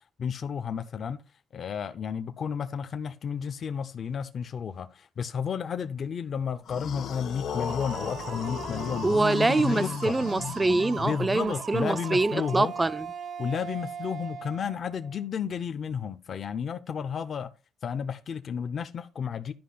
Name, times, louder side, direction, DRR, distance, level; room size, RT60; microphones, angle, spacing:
voice 1, 0.2-1.2 1.5-10.2 11.0-12.7 13.4-17.5 17.8-19.5, left 7 dB, 55° left, 0.5 m, -32 dB
sound 1, 6.7-11.5, left 7 dB, 75° left, 1.2 m, -35 dB
sound 2, 7.7-15.2, right 7 dB, 65° right, 1.3 m, -40 dB
voice 2, 9.0-13.1, right 2 dB, 20° right, 0.4 m, -25 dB
10.5 x 5.1 x 3.9 m
cardioid pair, 90°, 0 cm